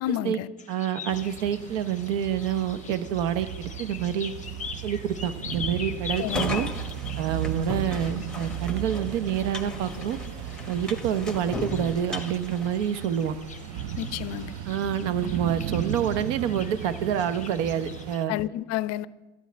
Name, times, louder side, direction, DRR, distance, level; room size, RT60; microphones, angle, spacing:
voice 1, 0.0-0.5 6.2-6.4 14.0-14.5 18.3-19.1, left 13 dB, 45° left, 17 dB, 0.5 m, -30 dB
sound 1, 0.6-18.2, left 6 dB, 20° left, 0.8 m, -43 dB
voice 2, 0.7-4.3 4.8-6.7 7.2-10.2 10.7-13.4 14.7-18.3, right 9 dB, 70° right, 13 dB, 0.9 m, -27 dB
sound 2, 1.1-18.2, right 11 dB, 45° right, 0.6 m, -36 dB
sound 3, 6.2-13.4, left 2 dB, ahead, 1.2 m, -36 dB
12.5 x 8.2 x 4.5 m, 1.1 s
hypercardioid pair, 95°, 38 cm